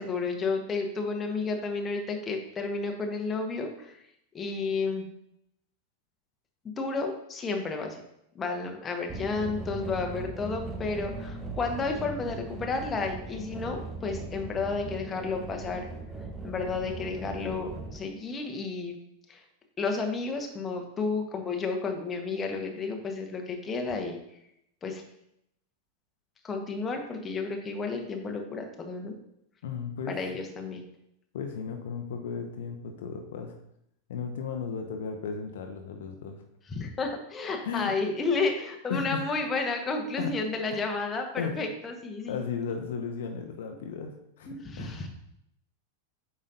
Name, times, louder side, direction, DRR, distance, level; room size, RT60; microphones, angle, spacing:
voice 1, 0.0-4.0 4.3-5.1 6.8-8.0 8.3-15.8 16.4-19.0 19.3-19.4 19.8-24.2 24.8-25.0 26.4-29.1 30.1-30.8 36.7-42.4 44.5-45.1, left 4 dB, 20° left, 3 dB, 1.1 m, -32 dB
sound 1, 9.1-18.0, right 2 dB, 15° right, 0.8 m, -39 dB
voice 2, 29.6-30.2 31.3-33.6 34.1-36.4 37.6-37.9 38.9-39.4 40.2-40.3 40.7-40.9 41.4-41.6 42.3-45.1, left 6 dB, 55° left, 4 dB, 0.8 m, -35 dB
8.6 x 5.4 x 2.6 m, 0.77 s
figure-of-eight pair, 90°, 0 cm